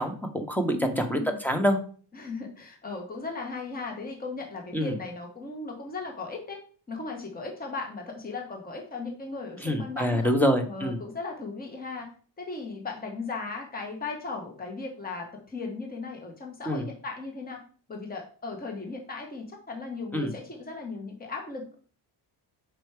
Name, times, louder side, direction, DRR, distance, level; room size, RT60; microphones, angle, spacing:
voice 1, 0.0-1.8 4.7-4.9 9.6-11.0 16.7-16.8 20.1-20.3, equal, 5° left, 5 dB, 1.0 m, -26 dB
voice 2, 0.7-1.4 2.1-6.6 6.9-10.3 10.6-12.1 12.4-17.6 17.9-21.8, left 3 dB, 20° left, 2 dB, 1.4 m, -37 dB
6.0 x 4.7 x 4.9 m, 0.41 s
cardioid pair, 145°, 42 cm